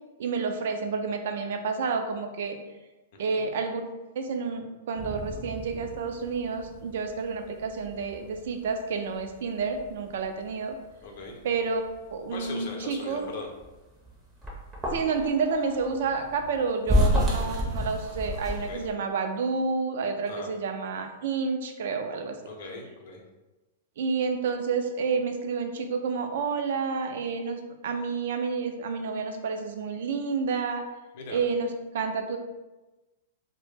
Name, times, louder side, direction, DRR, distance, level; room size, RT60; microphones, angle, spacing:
voice 1, 0.2-2.6 3.2-3.8 4.2-10.8 11.4-11.8 12.1-13.3 14.9-22.4 24.0-30.8 31.3-31.7 31.9-32.4, right 5 dB, 65° right, 5 dB, 0.3 m, -29 dB
sound 1, 5.0-12.8 13.2-18.9, equal, 10° right, 0.5 m, -32 dB
voice 2, 11.0-11.4 12.3-13.5 18.6-18.8 20.3-20.5 22.4-23.2 31.1-31.4, left 3 dB, 55° left, 1 dB, 0.5 m, -39 dB
2.0 x 2.0 x 3.2 m, 1.1 s
hypercardioid pair, 150°, 0 cm